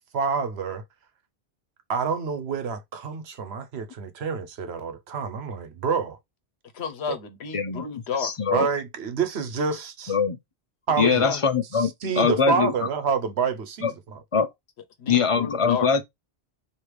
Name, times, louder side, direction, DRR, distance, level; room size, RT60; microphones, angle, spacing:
voice 1, 0.1-0.8 1.9-6.2 8.5-10.1 10.9-11.3 11.7-13.9, right 5 dB, 75° right, 1.0 m, -27 dB
voice 2, 6.7-8.3 11.0-11.4 15.0-15.9, left 6 dB, 80° left, 1.1 m, -31 dB
voice 3, 7.5-7.8 8.2-8.7 10.1-10.4 11.0-11.9 12.2-12.7 13.8-13.9 14.3-14.5 15.1-16.0, left 6 dB, 40° left, 0.6 m, -22 dB
3.3 x 2.8 x 4.6 m
omnidirectional pair, 1.1 m